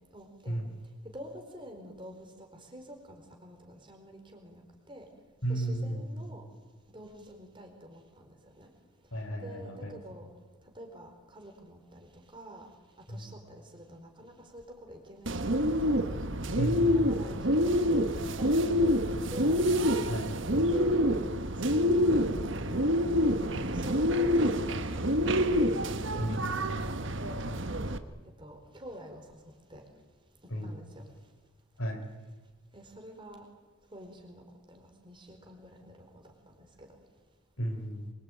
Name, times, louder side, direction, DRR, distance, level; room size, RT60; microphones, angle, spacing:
voice 1, 0.1-0.6 1.0-5.1 5.5-6.4 6.9-8.7 9.4-10.3 10.7-12.6 13.1-15.6 16.9-19.6 20.7-21.2 21.6-22.1 22.7-23.0 23.4-26.3 27.2-27.5 28.4-29.2 29.7-29.8 30.6-31.1 32.7-33.5 33.9-34.4 34.7-36.3 36.6-36.9, equal, 20° right, 3 dB, 4.5 m, -47 dB
voice 2, 5.4-6.2 9.1-10.0 13.1-13.3 16.6-17.2 20.1-20.4 26.2-26.9 30.5-30.7 31.8-32.0 37.6-38.1, right 1 dB, 70° left, 5 dB, 4.3 m, -34 dB
Bird, 15.3-28.0, equal, 55° right, 1.3 m, -27 dB
25.5 x 23.5 x 9.2 m, 1.3 s
head